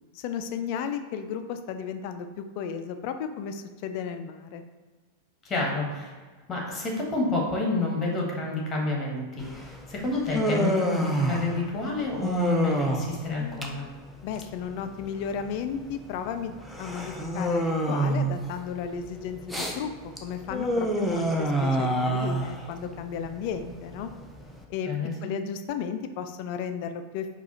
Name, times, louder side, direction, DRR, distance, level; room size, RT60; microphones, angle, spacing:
voice 1, 0.1-4.6 14.2-19.9 20.2-24.1 24.7-24.9 25.2-27.3, left 7 dB, 45° left, 8 dB, 0.4 m, -34 dB
voice 2, 5.4-6.1 6.5-13.9 24.9-25.3, left 3 dB, 20° left, -1 dB, 1.2 m, -29 dB
Human voice, 9.4-24.6, right 1 dB, ahead, 0.6 m, -29 dB
4.7 x 2.4 x 4.0 m, 1.4 s
figure-of-eight pair, 90°, 0 cm